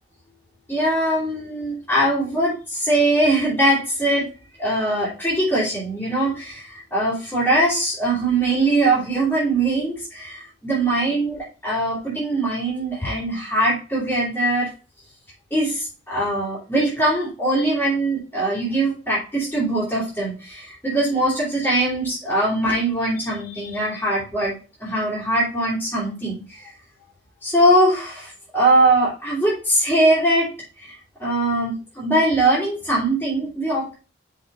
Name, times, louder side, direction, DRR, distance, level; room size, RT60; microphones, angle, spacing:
voice 1, 0.7-4.3 4.6-14.7 15.5-26.7 27.4-30.5 30.8-33.9, right 1 dB, 10° left, -8 dB, 3.6 m, -21 dB
6.4 x 5.9 x 4.4 m, 0.34 s
head